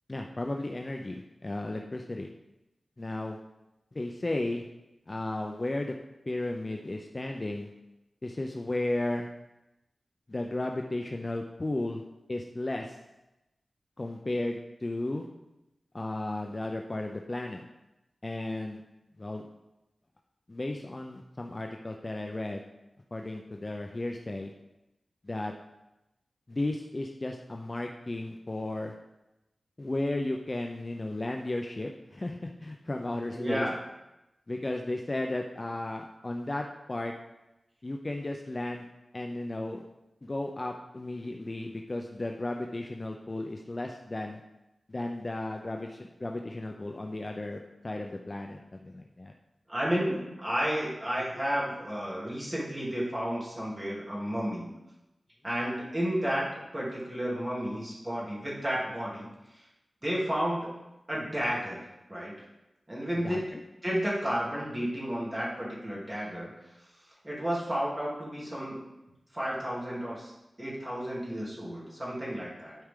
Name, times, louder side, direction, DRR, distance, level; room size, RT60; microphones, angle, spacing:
voice 1, 0.1-2.3 3.0-3.4 3.9-4.6 5.1-5.9 6.3-7.7 8.2-9.3 10.3-12.0 12.3-13.0 14.0-15.3 15.9-17.6 18.2-18.8 19.2-19.5 20.5-22.6 23.1-24.5 25.2-25.5 26.5-28.9 29.8-33.7 34.5-37.1 37.8-38.9 39.1-39.8 40.2-44.4 44.9-49.3 63.2-63.6, left 2 dB, 30° left, 2 dB, 0.5 m, -34 dB
voice 2, 33.3-33.7 49.7-54.7 55.4-59.6 60.0-60.8 61.1-61.8 62.1-62.4 62.9-63.5 63.8-66.5 67.2-68.8 69.3-70.3 70.6-72.8, equal, 20° right, -7 dB, 2.8 m, -32 dB
12.0 x 4.8 x 3.7 m, 0.95 s
wide cardioid pair, 105°, 0 cm